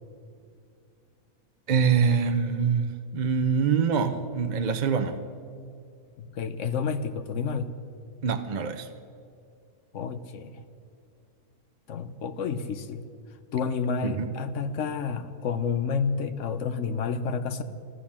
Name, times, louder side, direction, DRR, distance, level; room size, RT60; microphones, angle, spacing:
voice 1, 1.7-2.9 3.1-5.2 8.2-8.9 14.0-14.3, right 6 dB, 45° right, 7 dB, 0.5 m, -24 dB
voice 2, 6.2-7.7 9.9-10.6 11.9-13.0 13.5-17.6, left 5 dB, 60° left, 11 dB, 1.0 m, -30 dB
13.0 x 12.5 x 7.2 m, 2.5 s
omnidirectional pair, 1.6 m